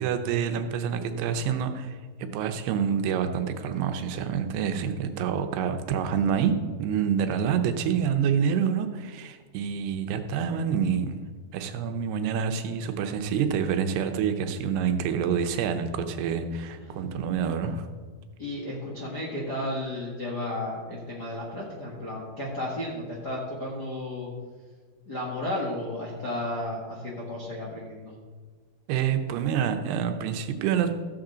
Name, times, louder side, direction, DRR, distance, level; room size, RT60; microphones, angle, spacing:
voice 1, 0.0-6.5 6.8-11.1 11.5-17.9 28.9-30.9, right 7 dB, 85° right, 7 dB, 2.8 m, -27 dB
voice 2, 16.7-17.1 18.4-24.3 25.1-28.1, left 1 dB, 55° left, -4 dB, 1.1 m, -33 dB
15.0 x 7.4 x 3.9 m, 1.5 s
omnidirectional pair, 4.6 m